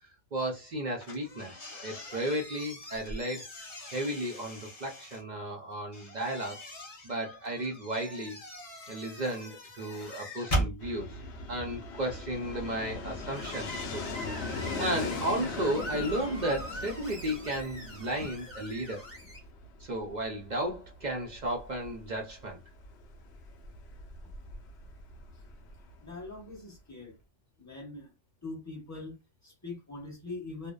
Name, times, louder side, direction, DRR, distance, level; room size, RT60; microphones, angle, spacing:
voice 1, 0.3-1.5 1.8-3.4 3.9-6.6 7.0-8.4 8.9-11.1 11.5-14.1 14.4-19.0 19.8-22.6, right 1 dB, 50° right, 0.5 m, -34 dB
sound 1, 1.0-5.2 5.9-10.7, right 1 dB, 40° left, 0.6 m, -39 dB
Fixed-wing aircraft airplane, 10.8-26.5, left 4 dB, 65° left, 0.8 m, -40 dB
Screech, 13.3-19.4, equal, 10° right, 0.8 m, -43 dB
voice 2, 26.0-27.1 27.6-28.1 28.4-30.7, left 3 dB, 15° left, 0.9 m, -42 dB
2.6 x 2.1 x 2.2 m
omnidirectional pair, 1.3 m